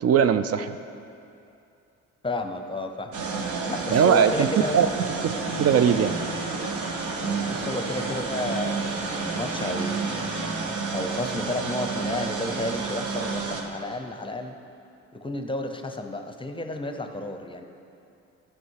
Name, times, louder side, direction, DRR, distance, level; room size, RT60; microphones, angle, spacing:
voice 1, 0.0-0.8 3.9-4.5 4.7-4.9 5.6-6.1, right 8 dB, 55° right, 10 dB, 0.4 m, -19 dB
voice 2, 2.2-3.1 3.7-4.8 7.2-10.3 10.9-14.6 15.1-17.7, left 2 dB, 15° left, 6 dB, 0.6 m, -32 dB
sound 1, 3.1-13.6, right 4 dB, 80° right, 1.0 m, -30 dB
sound 2, 5.4-10.7, equal, 20° right, 1.3 m, -38 dB
12.0 x 5.9 x 4.7 m, 2.6 s
cardioid pair, 90°, 30 cm